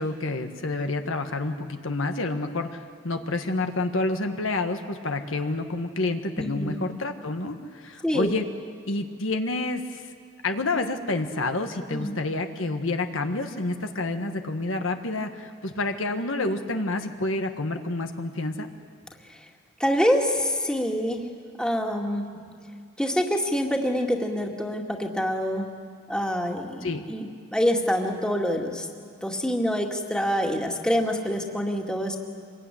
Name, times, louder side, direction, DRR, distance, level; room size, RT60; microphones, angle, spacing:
voice 1, 0.0-8.4 8.9-10.1 10.4-18.7 26.8-27.0, left 2 dB, 75° left, 6 dB, 1.6 m, -29 dB
voice 2, 6.4-6.8 8.0-8.3 11.9-12.1 19.8-21.2 21.6-22.2 23.0-25.7 26.1-28.9 29.2-32.2, equal, 5° left, 1 dB, 2.2 m, -26 dB
26.0 x 22.5 x 10.0 m, 2.2 s
head